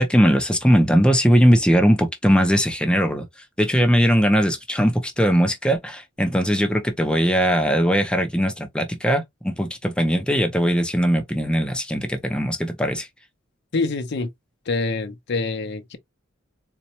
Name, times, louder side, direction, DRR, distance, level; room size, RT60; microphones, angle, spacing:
voice 1, 0.0-3.3 3.6-13.1, equal, 5° left, 0.6 m, -19 dB
voice 2, 13.7-14.3 14.7-16.0, left 3 dB, 60° left, 0.6 m, -25 dB
4.1 x 2.2 x 2.9 m
head